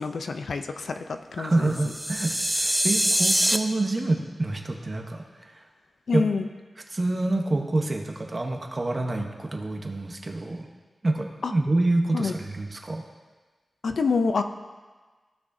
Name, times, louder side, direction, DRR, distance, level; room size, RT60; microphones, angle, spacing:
voice 1, 0.0-1.7 6.1-6.5 11.4-11.5 12.1-12.3 13.8-14.4, left 4 dB, 75° left, 7 dB, 0.4 m, -27 dB
voice 2, 1.4-5.2 5.5-5.6 6.1-6.2 6.9-10.7 11.0-13.0, right 2 dB, 30° right, 3 dB, 0.9 m, -27 dB
sound 1, 1.8-3.6, equal, 5° right, 0.4 m, -24 dB
15.5 x 6.2 x 2.6 m, 1.4 s
wide cardioid pair, 130°, 0 cm